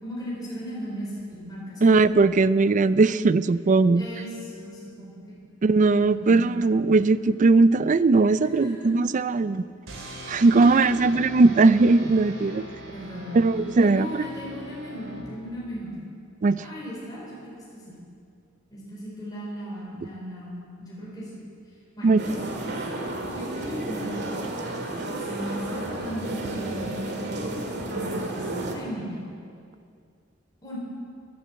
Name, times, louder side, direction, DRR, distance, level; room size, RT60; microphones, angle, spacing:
voice 1, 0.0-1.8 4.0-5.1 5.9-6.6 8.4-9.0 10.2-11.1 12.9-13.5 13.8-16.0 16.6-18.0 18.7-21.3 22.0-22.3 23.3-24.2 25.2-29.2 30.6-30.8, equal, 20° left, -6 dB, 4.2 m, -37 dB
voice 2, 1.8-4.0 5.6-9.6 10.3-12.6 13.3-14.3 16.4-16.6 22.0-22.2, right 3 dB, 40° right, 15 dB, 0.4 m, -19 dB
sound 1, 9.9-15.7, equal, 90° right, 3.0 m, -41 dB
sound 2, 22.2-28.8, right 2 dB, 55° right, 2.0 m, -32 dB
14.5 x 11.5 x 7.8 m, 2.4 s
head